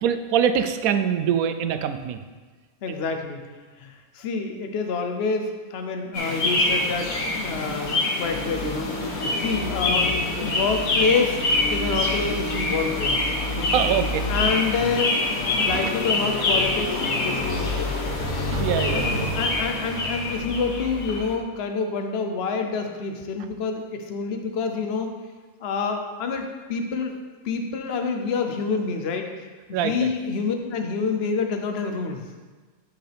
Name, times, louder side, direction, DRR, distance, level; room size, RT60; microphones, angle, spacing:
voice 1, 0.0-2.2 10.3-10.5 13.7-14.2 15.7-15.9 18.5-19.1 29.7-30.1, right 8 dB, 85° right, 9 dB, 1.0 m, -24 dB
voice 2, 2.8-3.4 3.8-8.9 9.4-10.1 10.4-11.4 11.7-13.2 13.5-13.7 14.3-15.2 15.5-18.0 18.9-25.1 25.6-27.2 27.4-32.2, left 5 dB, 55° left, 5 dB, 0.9 m, -27 dB
sound 1, 6.1-21.4, left 2 dB, 80° left, 1.5 m, -25 dB
10.0 x 5.6 x 3.4 m, 1.4 s
omnidirectional pair, 1.5 m